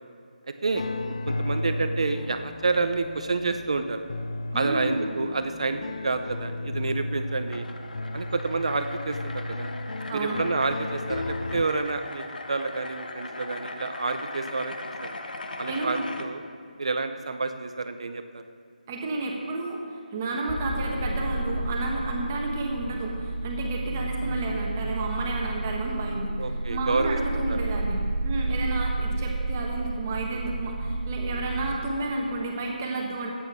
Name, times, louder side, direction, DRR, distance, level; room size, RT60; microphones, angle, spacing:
voice 1, 0.5-0.8 1.3-4.0 4.5-7.7 8.1-9.7 10.1-15.1 15.6-16.5 16.8-18.4 26.4-27.7, right 3 dB, 45° right, 8 dB, 0.6 m, -29 dB
sound 1, 0.7-11.6, left 2 dB, 40° left, 0.4 m, -34 dB
voice 2, 4.5-5.0 10.1-10.4 15.7-16.1 18.9-26.3 26.7-33.3, right 2 dB, 15° right, -1 dB, 1.2 m, -31 dB
sound 2, 6.8-16.3, left 2 dB, 75° left, 1.2 m, -40 dB
sound 3, 20.5-31.8, right 2 dB, 15° left, 2.5 m, -31 dB
13.5 x 8.7 x 6.1 m, 2.1 s
figure-of-eight pair, 175°, 5 cm